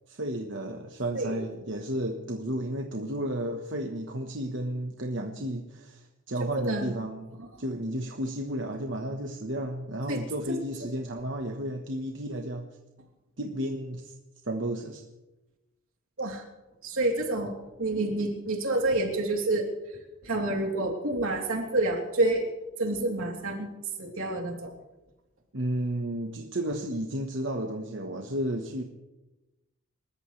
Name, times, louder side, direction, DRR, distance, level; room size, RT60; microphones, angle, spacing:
voice 1, 0.1-7.3 7.6-12.7 13.4-14.1 14.4-15.0 25.5-28.8, right 1 dB, 60° right, 3 dB, 1.2 m, -32 dB
voice 2, 6.5-6.9 7.4-7.6 10.1-10.2 10.5-10.9 16.2-16.4 16.8-22.5 22.8-23.7 24.0-24.7, right 2 dB, 85° right, 1 dB, 3.2 m, -29 dB
28.5 x 14.0 x 3.3 m, 1.0 s
head